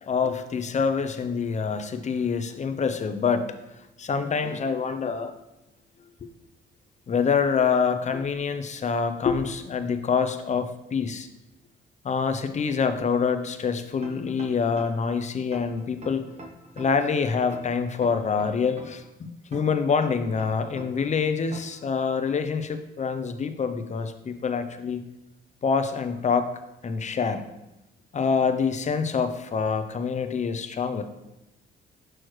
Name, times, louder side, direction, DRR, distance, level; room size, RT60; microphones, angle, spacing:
voice 1, 0.0-5.3 6.2-6.3 7.1-11.3 12.0-16.2 16.8-25.0 25.6-26.5 26.8-27.5 28.1-31.0, left 5 dB, 35° left, 9 dB, 0.6 m, -26 dB
sound 1, 14.0-15.1 15.5-17.1 17.5-19.1 19.5-21.1 21.5-21.8, right 1 dB, 35° right, 1.1 m, -43 dB
6.2 x 6.1 x 3.1 m, 0.92 s
cardioid pair, 90°, 20 cm